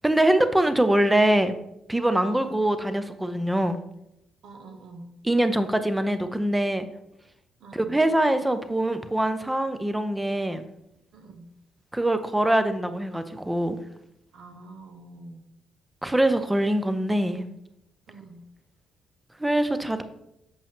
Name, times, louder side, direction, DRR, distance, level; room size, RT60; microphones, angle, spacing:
voice 1, 0.0-1.5 1.9-3.8 5.2-6.9 7.7-10.6 11.9-13.8 16.0-17.4 19.4-20.0, right 1 dB, 10° right, 10 dB, 0.6 m, -23 dB
voice 2, 2.3-2.6 4.4-5.2 7.6-8.0 11.1-11.5 14.3-15.5 18.1-18.4, right 3 dB, 75° right, 5 dB, 1.3 m, -45 dB
7.0 x 5.3 x 3.5 m, 0.82 s
cardioid pair, 90°, 0 cm